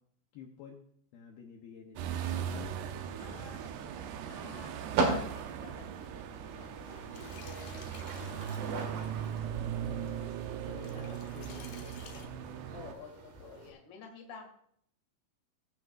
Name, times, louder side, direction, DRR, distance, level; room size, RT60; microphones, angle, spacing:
voice 1, 0.3-0.9 1.1-2.5 8.4-8.8 9.8-11.9, left 7 dB, 90° left, 1 dB, 2.1 m, -51 dB
sound 1, 2.0-12.9, right 9 dB, 85° right, 2.3 m, -39 dB
sound 2, 2.2-13.7, right 3 dB, 60° right, 3.7 m, -40 dB
voice 2, 3.2-10.3 10.9-11.0 12.7-14.5, left 5 dB, 50° left, 1 dB, 1.4 m, -53 dB
sound 3, 7.1-12.3, left 7 dB, 70° left, 2.8 m, -54 dB
23.0 x 8.0 x 2.5 m, 0.67 s
omnidirectional pair, 5.7 m